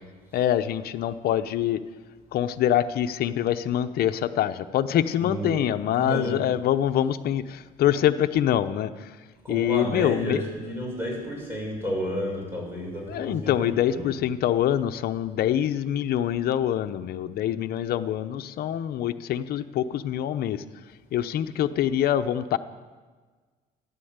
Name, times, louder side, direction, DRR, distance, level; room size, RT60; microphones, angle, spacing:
voice 1, 0.3-1.8 2.3-9.1 9.5-10.5 13.1-20.6 21.1-22.6, left 11 dB, 65° left, 10 dB, 0.8 m, -25 dB
voice 2, 5.2-5.6 5.9-6.4 9.4-14.1, equal, 15° right, -1 dB, 6.3 m, -31 dB
13.5 x 11.0 x 8.1 m, 1.4 s
cardioid pair, 110°, 17 cm